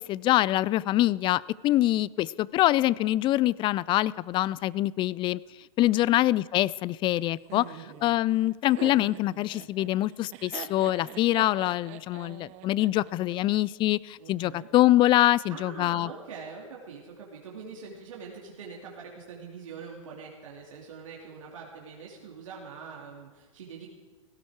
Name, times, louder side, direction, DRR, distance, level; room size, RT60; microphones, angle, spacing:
voice 1, 0.0-5.4 5.8-7.7 8.0-16.1, left 15 dB, 30° left, 22 dB, 0.4 m, -24 dB
Laughter, 7.5-13.6, right 12 dB, 45° right, 1.1 m, -44 dB
voice 2, 7.6-7.9 14.2-14.7 15.5-23.9, right 5 dB, 75° right, -2 dB, 2.6 m, -44 dB
17.0 x 16.0 x 4.8 m, 1.4 s
hypercardioid pair, 100°, 17 cm